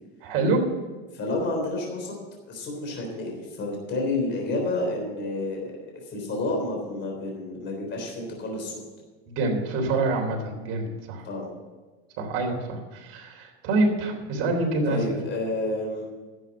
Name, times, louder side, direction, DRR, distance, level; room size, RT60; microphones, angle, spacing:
voice 1, 0.2-0.6 9.3-11.2 12.2-15.2, right 2 dB, 55° right, 1 dB, 3.7 m, -26 dB
voice 2, 1.1-2.2 2.5-5.7 6.1-8.7 11.2-11.5 14.9-16.0, left 2 dB, 40° left, 0 dB, 3.7 m, -30 dB
11.5 x 8.0 x 8.7 m, 1.3 s
supercardioid pair, 130°, 29 cm